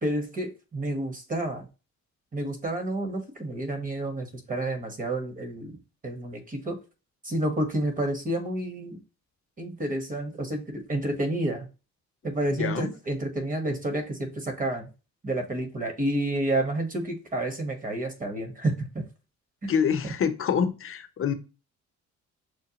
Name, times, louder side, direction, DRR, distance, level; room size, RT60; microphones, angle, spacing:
voice 1, 0.0-1.7 2.3-5.8 6.0-6.8 7.2-9.0 9.6-11.7 12.2-14.9 15.2-19.0, right 1 dB, 25° right, 1.2 m, -30 dB
voice 2, 12.5-12.9 19.7-21.3, left 7 dB, 45° left, 0.7 m, -26 dB
6.3 x 2.1 x 2.9 m
cardioid pair, 90°, 30 cm